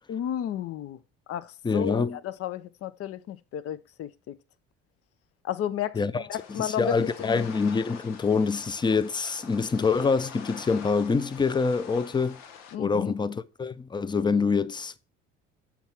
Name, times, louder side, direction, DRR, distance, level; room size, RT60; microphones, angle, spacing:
voice 1, 0.1-1.0 1.3-4.4 5.4-7.4 12.7-13.1, left 10 dB, 55° left, 0.6 m, -33 dB
voice 2, 1.6-2.2 5.9-12.4 12.8-15.0, left 4 dB, 15° left, 0.5 m, -26 dB
sound 1, 6.3-12.8, left 7 dB, 80° left, 0.9 m, -46 dB
7.0 x 3.6 x 5.7 m
supercardioid pair, 75°, 29 cm